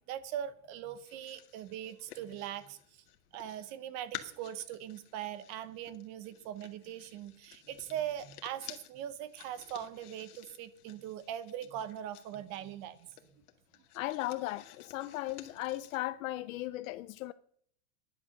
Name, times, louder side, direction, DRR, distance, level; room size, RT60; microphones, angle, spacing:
voice 1, 0.1-2.8 3.3-13.0, right 10 dB, 35° right, 0.9 m, -41 dB
sound 1, 1.0-3.7 4.1-16.0, left 12 dB, 85° left, 1.8 m, -53 dB
voice 2, 13.9-17.3, left 16 dB, 65° left, 0.6 m, -36 dB
11.0 x 10.5 x 6.5 m
supercardioid pair, 165°, 44 cm